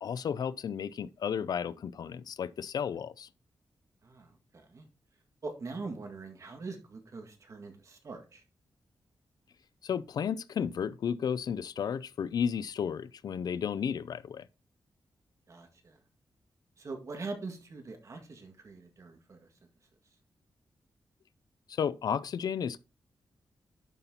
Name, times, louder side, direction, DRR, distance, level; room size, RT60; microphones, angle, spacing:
voice 1, 0.0-3.3 9.8-14.5 21.7-22.8, left 7 dB, 65° left, 0.4 m, -33 dB
voice 2, 4.0-4.9 5.4-8.4 15.5-16.0 16.8-19.4, right 3 dB, 45° right, 1.8 m, -43 dB
10.5 x 5.7 x 2.8 m
wide cardioid pair, 125°, 7 cm